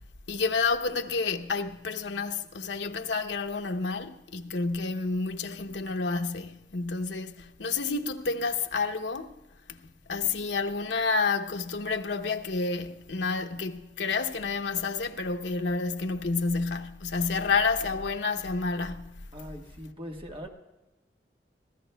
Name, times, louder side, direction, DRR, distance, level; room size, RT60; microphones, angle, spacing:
voice 1, 0.3-9.4 9.7-9.8 10.1-19.2, left 4 dB, 85° left, 0.8 m, -29 dB
voice 2, 19.3-20.5, equal, 30° right, 1.4 m, -41 dB
25.0 x 15.5 x 2.3 m
head